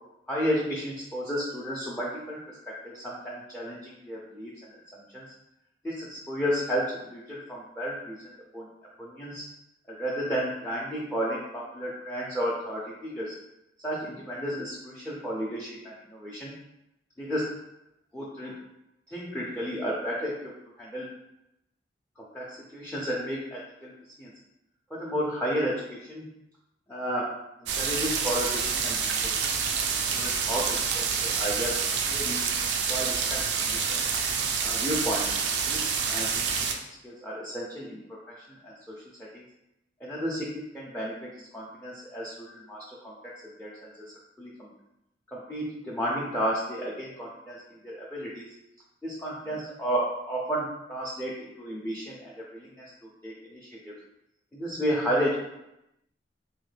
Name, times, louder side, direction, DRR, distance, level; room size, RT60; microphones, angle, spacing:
voice 1, 0.3-4.5 5.1-5.2 5.8-8.7 9.0-9.4 9.9-13.3 13.8-16.5 17.2-17.5 18.1-18.6 19.1-20.4 20.8-21.1 22.2-23.9 24.2-24.3 24.9-26.3 26.9-27.3 27.8-29.6 30.1-31.8 32.1-32.4 32.9-34.1 34.6-35.4 35.7-36.8 37.0-38.0 38.3-38.9 39.3-39.4 40.0-43.1 43.6-43.9 44.4-44.7 45.3-48.5 49.0-52.9 53.2-53.9 54.5-55.4, equal, 5° left, -6 dB, 0.4 m, -32 dB
sound 1, 27.7-36.7, right 6 dB, 70° right, 0.3 m, -28 dB
3.1 x 2.1 x 3.2 m, 0.87 s
head